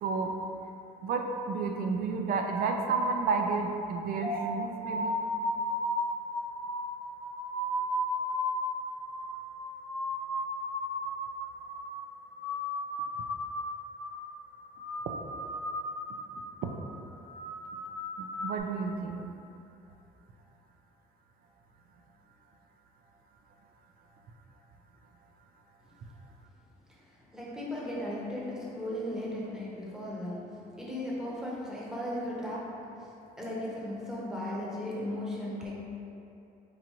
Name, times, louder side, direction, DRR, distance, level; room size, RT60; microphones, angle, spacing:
voice 1, 0.0-0.4 1.0-5.2 16.6-16.7 18.2-19.3, right 4 dB, 60° right, 3 dB, 0.4 m, -31 dB
sound 1, 4.2-11.2 11.5-12.0 12.2-13.7 14.0-14.4 14.7-16.2 16.5-16.9 17.2-18.6, left 1 dB, 45° left, 1.1 m, -34 dB
voice 2, 27.3-33.1 33.4-35.7, left 1 dB, 5° right, -6 dB, 0.8 m, -36 dB
4.6 x 2.5 x 2.9 m, 2.8 s
cardioid pair, 110°, 17 cm